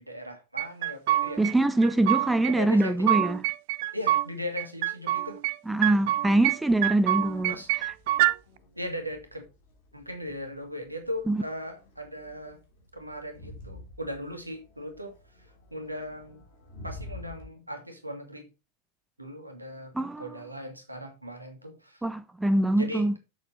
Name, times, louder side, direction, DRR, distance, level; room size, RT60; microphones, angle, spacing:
voice 1, 0.0-1.4 2.5-3.2 3.9-5.4 7.5-7.7 8.8-9.5 9.9-12.6 12.9-15.2 15.7-16.4 16.8-18.5 19.2-22.0 22.8-23.1, left 1 dB, 85° right, 1.9 m, -38 dB
sound 1, 0.6-1.5 1.8-2.5 2.8-4.3 4.6-5.6 5.8-6.6 6.8-8.3, right 14 dB, 50° right, 0.5 m, -26 dB
voice 2, 1.4-3.4 5.7-7.5 11.3-11.4 19.9-20.2 22.0-23.1, right 2 dB, 5° right, 0.7 m, -24 dB
Crowd, 6.7-17.4, left 2 dB, 50° left, 3.1 m, -49 dB
7.1 x 7.1 x 4.3 m
figure-of-eight pair, 90°, 0 cm